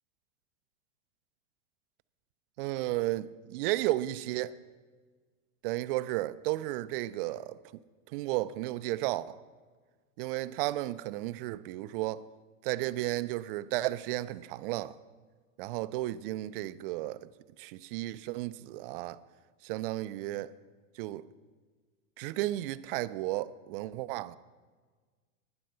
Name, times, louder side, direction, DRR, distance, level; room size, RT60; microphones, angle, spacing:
voice 1, 2.6-4.6 5.6-7.8 8.1-9.4 10.2-12.3 12.6-15.0 15.6-17.3 17.6-19.2 19.6-20.5 21.0-21.3 22.2-24.4, right 16 dB, 45° right, 0.4 m, -33 dB
11.5 x 10.5 x 5.5 m
hypercardioid pair, 125°, 42 cm